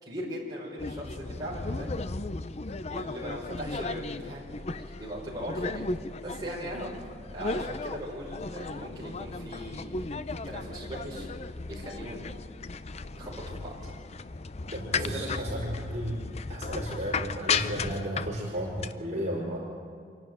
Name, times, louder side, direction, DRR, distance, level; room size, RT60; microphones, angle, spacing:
voice 1, 0.0-2.1 2.9-4.4 4.8-5.8 6.2-6.9 7.3-11.3 11.7-12.4 13.2-13.8 14.9-15.5, equal, 25° right, -6 dB, 5.2 m, -39 dB
sound 1, 0.8-18.9, left 4 dB, 40° left, 0.6 m, -35 dB
voice 2, 14.7-16.2 16.5-19.6, right 1 dB, 40° right, -3 dB, 5.2 m, -34 dB
26.5 x 11.5 x 9.2 m, 2.2 s
head